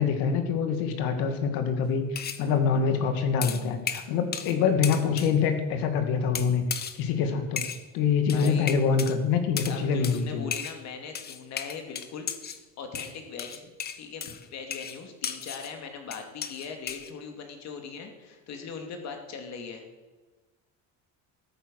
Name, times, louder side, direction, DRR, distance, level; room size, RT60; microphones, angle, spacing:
voice 1, 0.0-7.6 7.9-10.5, left 6 dB, 80° left, 7 dB, 2.1 m, -25 dB
sound 1, 2.2-2.5 3.4-4.6 4.8-5.4 6.3-7.0 7.6-7.8 8.3-9.2 9.6-9.8 10.0-10.2 10.5-10.8 11.1-12.6 12.9-15.7 16.1-17.1, left 8 dB, 30° left, 0.8 m, -35 dB
voice 2, 8.3-8.7 9.6-12.3 12.8-13.7 14.0-19.8, left 5 dB, 50° left, 5 dB, 2.5 m, -40 dB
13.0 x 9.4 x 6.4 m, 1.3 s
cardioid pair, 145°, 35 cm